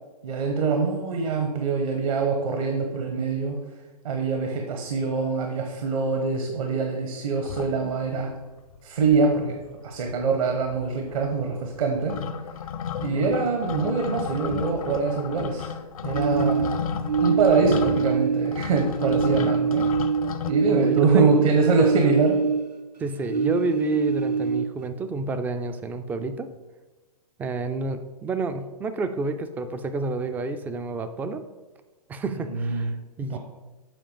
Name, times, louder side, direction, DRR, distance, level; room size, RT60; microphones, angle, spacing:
voice 1, 0.2-3.6 4.0-8.3 8.8-9.6 9.8-12.2 13.0-16.7 17.2-19.9 20.5-22.3 32.5-32.9 33.3-33.4, right 4 dB, 55° right, 3 dB, 1.2 m, -24 dB
sound 1, 7.4-8.3 8.8-8.9 9.0-9.7 9.9-20.5, left 7 dB, 60° left, 0.7 m, -33 dB
sound 2, 16.1-18.6 18.9-22.9 23.2-24.9, right 6 dB, 80° right, 0.7 m, -25 dB
voice 2, 20.7-21.4 21.8-22.1 23.0-26.5 27.4-31.4 32.1-32.9 33.2-33.4, right 3 dB, 10° right, 9 dB, 0.3 m, -29 dB
7.8 x 5.1 x 5.1 m, 1.2 s
figure-of-eight pair, 115°, 20 cm